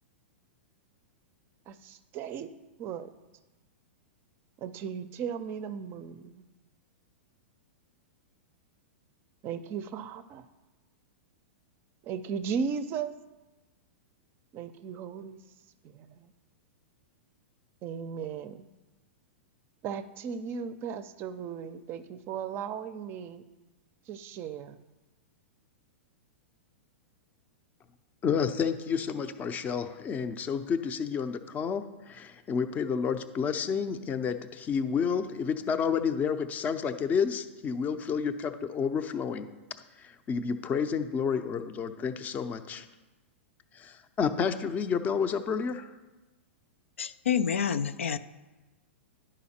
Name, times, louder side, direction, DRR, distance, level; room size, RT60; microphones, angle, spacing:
voice 1, 1.7-2.5 2.8-3.1 4.6-6.4 9.4-10.5 12.0-13.2 14.5-15.4 15.8-16.3 17.8-18.7 19.8-23.4 24.1-24.8, right 6 dB, 35° right, 0.5 m, -36 dB
voice 2, 28.2-39.5 40.0-42.9 43.7-45.9, left 6 dB, 25° left, 0.5 m, -30 dB
voice 3, 47.0-48.2, left 7 dB, 85° left, 0.4 m, -28 dB
10.5 x 5.0 x 4.2 m
hypercardioid pair, 120°, 7 cm